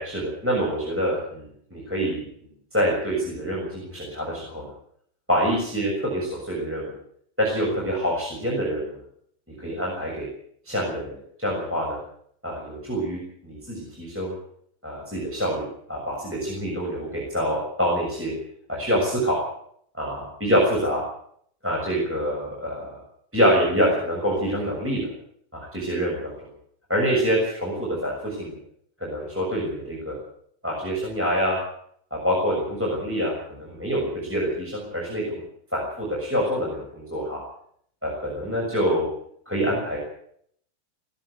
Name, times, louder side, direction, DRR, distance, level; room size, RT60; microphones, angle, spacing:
voice 1, 0.0-2.2 2.7-4.7 5.3-6.9 7.4-9.0 9.6-10.3 10.6-12.0 12.4-14.3 14.8-18.3 18.7-19.4 19.9-21.0 21.6-22.9 23.3-25.1 25.5-26.3 26.9-28.6 29.0-30.2 30.6-31.6 32.1-35.4 35.7-37.4 38.0-39.1 39.5-40.0, equal, 5° right, -3 dB, 6.6 m, -26 dB
19.0 x 17.0 x 8.4 m, 0.65 s
omnidirectional pair, 4.0 m